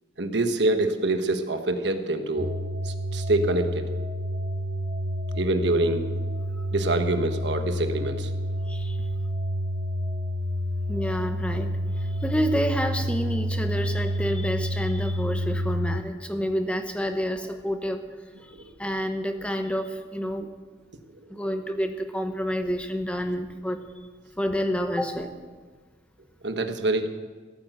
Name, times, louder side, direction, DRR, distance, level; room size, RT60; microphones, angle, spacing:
voice 1, 0.2-2.5 2.8-3.9 5.3-6.1 6.7-8.3 18.5-18.6 26.4-27.1, right 2 dB, 75° right, 7 dB, 1.3 m, -25 dB
sound 1, 2.4-16.0, equal, 50° right, 1.0 m, -29 dB
voice 2, 8.7-9.1 10.9-18.0 18.4-20.5 21.3-23.8 24.4-25.4, equal, 5° left, 6 dB, 0.9 m, -29 dB
16.5 x 9.2 x 7.9 m, 1.5 s
head